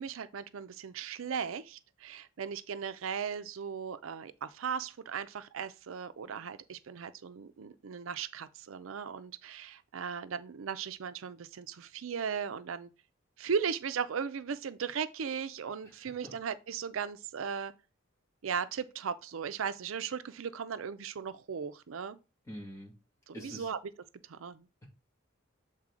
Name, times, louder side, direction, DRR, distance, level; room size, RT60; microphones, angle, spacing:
voice 1, 0.0-12.9 13.4-17.7 18.4-22.2 23.4-23.8 24.3-24.7, right 6 dB, 80° right, 0.5 m, -37 dB
voice 2, 15.8-16.3 22.5-23.0 23.3-23.7, equal, 15° left, 2.3 m, -46 dB
7.5 x 4.0 x 3.7 m
head